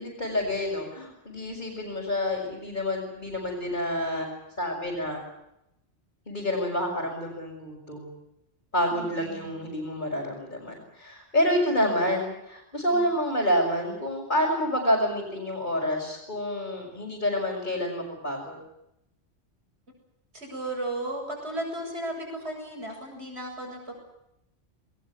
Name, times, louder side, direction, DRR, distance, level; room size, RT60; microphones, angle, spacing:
voice 1, 0.0-5.2 6.3-8.1 8.7-18.6, left 1 dB, 45° left, -4 dB, 6.5 m, -28 dB
voice 2, 8.9-9.5 12.9-13.0 20.3-24.0, right 1 dB, 65° right, 1 dB, 7.8 m, -35 dB
21.0 x 20.0 x 9.8 m, 0.83 s
omnidirectional pair, 1.2 m